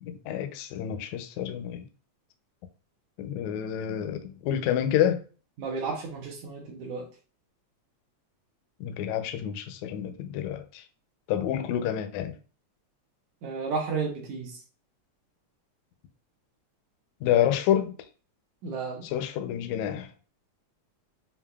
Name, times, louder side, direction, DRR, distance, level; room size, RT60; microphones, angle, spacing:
voice 1, 0.0-1.9 3.2-5.2 8.8-10.8 11.3-12.3 17.2-17.9 19.1-20.1, left 10 dB, 80° left, 1.7 m, -28 dB
voice 2, 5.6-7.1 13.4-14.6 18.6-19.1, right 4 dB, 75° right, 2.3 m, -32 dB
6.9 x 2.6 x 2.2 m
omnidirectional pair, 3.5 m